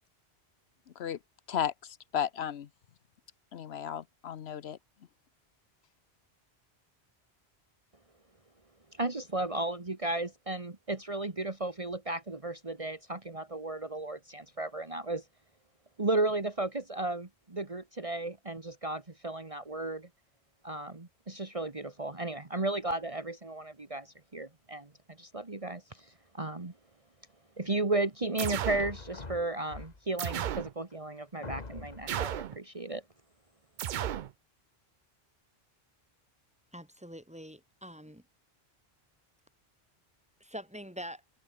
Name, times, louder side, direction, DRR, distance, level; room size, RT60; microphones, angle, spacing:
voice 1, 1.5-2.7 3.5-4.8, left 9 dB, 80° left, 1.1 m, -34 dB
voice 2, 9.0-15.2 16.0-20.1 20.6-24.9 25.2-26.7 27.6-33.0, right 2 dB, 35° right, 1.8 m, -34 dB
sound 1, 28.4-28.9 30.2-30.7 32.1-32.6 33.8-34.3, right 10 dB, 55° right, 0.6 m, -33 dB
sound 2, 28.7-30.3 30.9-31.0 31.4-32.3, left 3 dB, 40° left, 1.9 m, -44 dB
voice 3, 36.7-38.2 40.4-41.2, equal, 5° right, 5.8 m, -44 dB
omnidirectional pair, 1.1 m